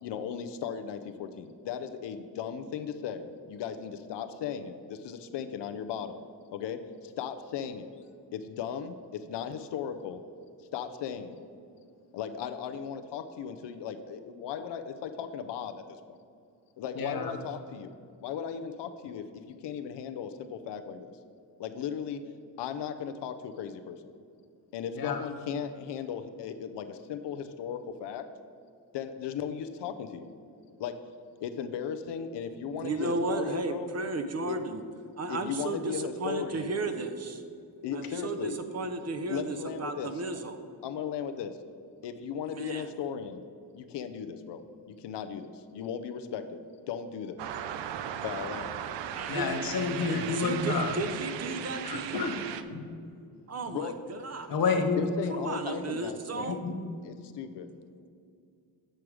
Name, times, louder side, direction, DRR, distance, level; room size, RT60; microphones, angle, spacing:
voice 1, 0.0-6.2 6.5-7.9 8.3-10.2 10.6-11.4 12.1-16.2 16.8-21.2 21.6-22.2 22.6-24.0 24.7-28.2 28.9-30.3 30.8-31.0 31.4-33.9 34.5-34.6 35.3-36.7 37.8-38.6 39.3-40.1 40.8-41.5 42.0-43.4 43.7-44.6 44.9-46.6 46.9-47.5 48.2-48.7 53.7-53.9 55.0-56.6 57.0-57.7, left 7 dB, 80° left, 9 dB, 0.6 m, -37 dB
voice 2, 17.0-17.3 24.9-25.2 49.3-50.9 51.8-52.4 52.7-52.8 54.5-55.0 56.5-56.8, left 4 dB, 55° left, 4 dB, 1.0 m, -29 dB
voice 3, 32.8-34.8 35.2-37.4 37.9-40.6 42.5-42.9 49.1-49.6 50.1-52.3 53.5-54.6 55.3-56.6, right 3 dB, 40° right, 8 dB, 0.6 m, -34 dB
sound 1, 47.4-52.6, right 9 dB, 85° right, 0.5 m, -37 dB
7.7 x 4.7 x 4.8 m, 2.4 s
cardioid pair, 85°, 42 cm